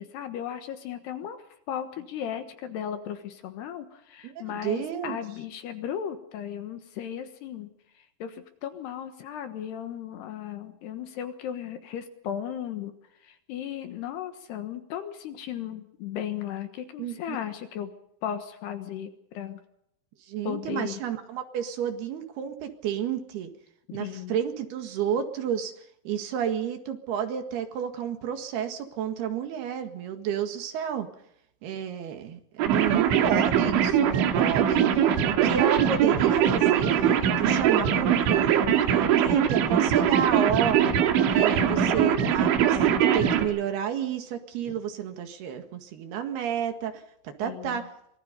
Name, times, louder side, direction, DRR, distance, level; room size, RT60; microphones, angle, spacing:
voice 1, 0.0-1.4 1.7-7.7 8.2-12.9 13.2-17.9 18.2-19.6 20.4-21.0 23.9-24.4 37.7-38.3 41.7-42.3 44.7-44.8 47.4-47.8, left 9 dB, 70° left, 8 dB, 3.1 m, -36 dB
voice 2, 4.2-5.2 17.0-17.4 20.3-23.5 23.9-25.7 26.1-31.1 31.6-40.8 41.3-47.9, right 9 dB, 60° right, 7 dB, 3.5 m, -31 dB
sound 1, 32.6-43.5, right 9 dB, 75° right, 4.2 m, -22 dB
25.5 x 19.5 x 5.3 m, 0.74 s
omnidirectional pair, 5.5 m